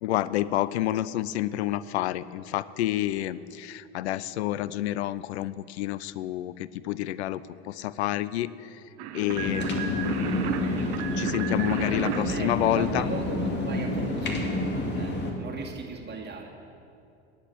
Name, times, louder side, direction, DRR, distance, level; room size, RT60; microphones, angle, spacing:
voice 1, 0.0-8.8 9.1-13.1, left 14 dB, 90° left, 17 dB, 0.5 m, -29 dB
sound 1, 9.0-13.4, right 10 dB, 65° right, 0.8 m, -35 dB
sound 2, 9.3-15.3, left 1 dB, 35° left, 2.2 m, -29 dB
voice 2, 11.8-16.5, right 4 dB, 30° right, 0 dB, 2.3 m, -38 dB
10.0 x 8.2 x 8.9 m, 2.6 s
hypercardioid pair, 95°, 33 cm